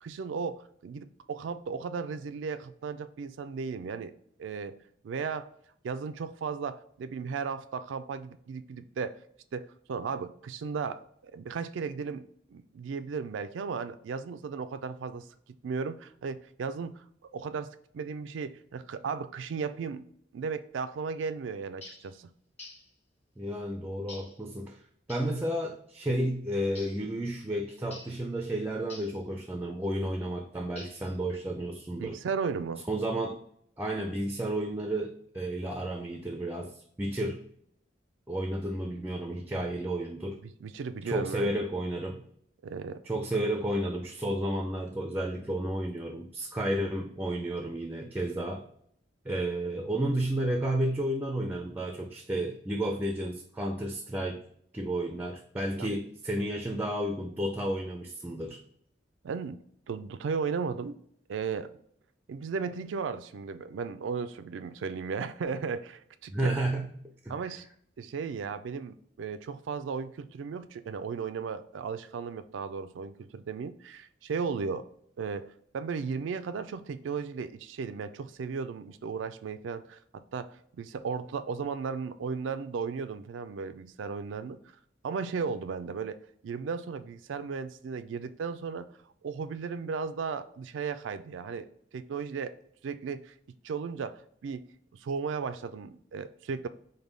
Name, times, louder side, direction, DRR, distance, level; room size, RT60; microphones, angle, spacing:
voice 1, 0.0-4.1 4.4-4.8 5.0-5.5 5.8-9.2 9.5-12.2 12.5-15.2 15.6-16.9 17.3-17.7 17.9-20.0 20.3-22.3 32.0-32.9 40.4-41.5 42.6-43.0 55.8-55.9 59.2-61.0 61.3-61.7 62.3-66.6 67.3-67.7 68.0-74.8 75.2-84.6 85.0-86.2 86.4-88.9 89.2-91.7 91.9-92.5 92.8-93.3 93.6-94.7 94.9-96.7, right 5 dB, 85° right, 12 dB, 0.3 m, -35 dB
sound 1, 21.8-22.1 22.6-22.9 24.1-24.4 25.1-25.4 26.7-27.0 27.9-28.2 28.9-29.2 30.8-31.2, left 2 dB, 35° left, 1.5 m, -47 dB
voice 2, 23.4-24.8 25.1-32.2 32.9-33.4 33.8-37.4 38.3-40.4 41.0-42.2 43.0-48.6 49.2-54.4 54.7-58.6 66.3-66.9 67.2-67.6, right 1 dB, 10° right, 3 dB, 0.3 m, -32 dB
5.3 x 2.2 x 3.2 m, 0.66 s
head